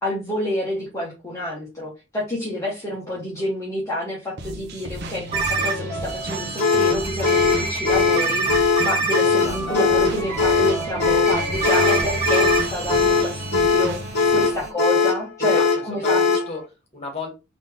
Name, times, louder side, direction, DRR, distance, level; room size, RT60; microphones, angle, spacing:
voice 1, 0.0-16.2, left 1 dB, 15° left, 1.2 m, -28 dB
sound 1, 4.4-14.5, right 1 dB, 60° right, 0.8 m, -34 dB
sound 2, 5.3-14.7, right 3 dB, 35° right, 1.5 m, -28 dB
sound 3, 6.6-16.5, left 4 dB, 60° left, 1.0 m, -20 dB
voice 2, 14.2-14.5 15.4-17.3, left 3 dB, 35° left, 1.8 m, -35 dB
4.0 x 3.0 x 3.6 m
head